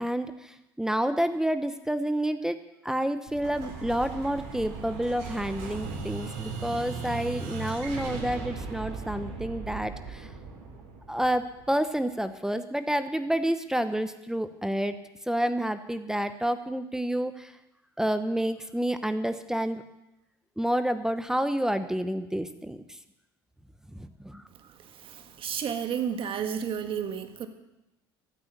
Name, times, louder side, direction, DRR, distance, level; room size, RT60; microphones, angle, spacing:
voice 1, 0.0-2.6 2.8-10.3 11.1-15.0 15.3-17.5 18.0-19.9 20.6-22.8 23.9-24.4, right 1 dB, 5° right, 10 dB, 0.9 m, -29 dB
Explosion, 3.3-11.9, right 4 dB, 65° right, 4.1 m, -38 dB
voice 2, 24.6-27.5, right 8 dB, 45° right, 8 dB, 1.6 m, -32 dB
14.0 x 9.1 x 7.2 m, 0.93 s
hypercardioid pair, 75°, 12 cm